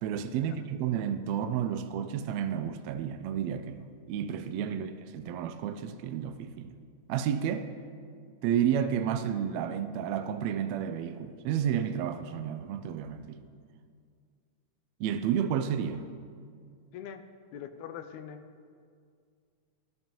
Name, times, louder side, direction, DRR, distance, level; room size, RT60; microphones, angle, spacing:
voice 1, 0.0-6.7 7.1-7.7 8.4-13.4 15.0-16.1, right 9 dB, 80° right, 1.7 m, -31 dB
voice 2, 16.9-18.5, left 8 dB, 85° left, 1.9 m, -43 dB
14.5 x 12.0 x 3.0 m
omnidirectional pair, 3.3 m